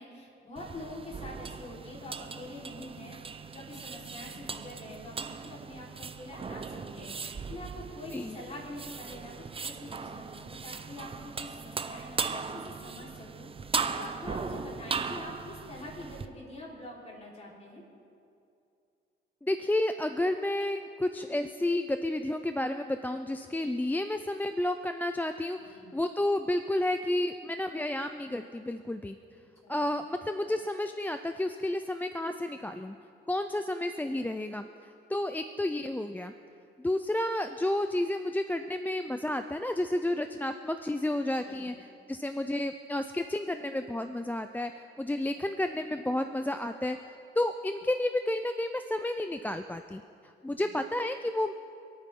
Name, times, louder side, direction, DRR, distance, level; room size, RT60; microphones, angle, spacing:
voice 1, 0.0-3.2 3.5-13.5 14.0-17.8 25.6-25.9 29.6-29.9 41.5-41.7 45.2-45.4 50.4-50.7, left 1 dB, 35° left, -4 dB, 4.1 m, -45 dB
sound 1, 0.6-16.3, right 5 dB, 30° right, 0.7 m, -38 dB
voice 2, 19.4-29.2 29.7-33.0 33.3-34.7 35.1-36.3 36.8-41.8 42.1-44.7 45.0-47.0 47.4-51.5, left 1 dB, 10° left, 8 dB, 0.5 m, -31 dB
27.5 x 9.2 x 3.8 m, 2.5 s
cardioid pair, 90°, 20 cm